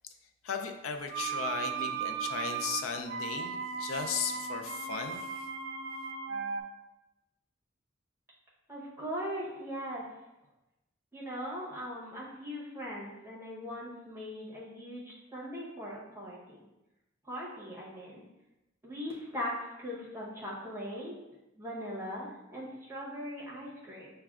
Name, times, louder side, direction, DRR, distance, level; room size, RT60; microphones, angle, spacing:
voice 1, 0.4-5.5, left 6 dB, 85° left, 5 dB, 0.4 m, -36 dB
sound 1, 1.1-6.6, right 6 dB, 75° right, 0.4 m, -36 dB
voice 2, 8.7-10.0 11.1-16.6 17.3-18.2 18.8-19.5 19.8-21.1 21.6-24.1, equal, 10° right, -6 dB, 0.8 m, -40 dB
5.7 x 2.2 x 2.4 m, 0.98 s
head